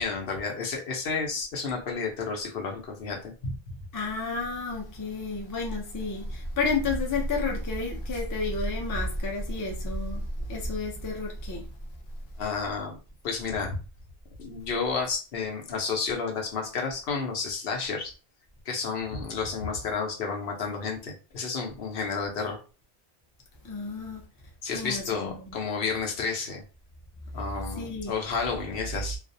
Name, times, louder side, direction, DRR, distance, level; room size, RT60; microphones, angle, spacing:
voice 1, 0.0-3.5 8.1-8.2 12.4-13.0 13.2-13.8 14.4-18.1 18.7-22.6 24.6-26.6 27.3-29.2, left 5 dB, 65° left, 0.8 m, -31 dB
voice 2, 3.9-11.6 23.6-24.2 24.7-25.5 27.8-28.1, left 3 dB, 30° left, 0.4 m, -31 dB
2.4 x 2.0 x 2.6 m
omnidirectional pair, 1.1 m